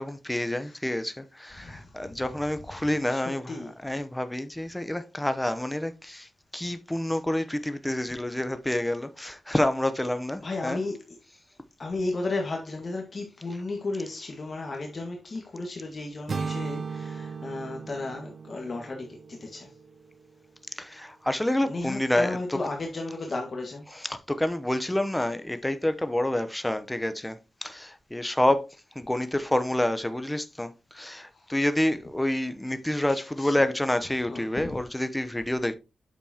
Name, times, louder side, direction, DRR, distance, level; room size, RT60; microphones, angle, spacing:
voice 1, 0.0-10.8 20.7-22.6 23.9-28.6 28.9-35.8, left 1 dB, 10° left, 0.8 m, -28 dB
voice 2, 1.6-1.9 3.1-3.7 10.4-11.0 11.8-19.7 21.6-23.8 31.3-31.5 33.1-33.6 34.2-34.5, left 2 dB, 45° left, 1.7 m, -34 dB
sound 1, 16.3-20.3, right 5 dB, 50° right, 0.5 m, -37 dB
8.5 x 6.9 x 2.9 m
cardioid pair, 80°, 0 cm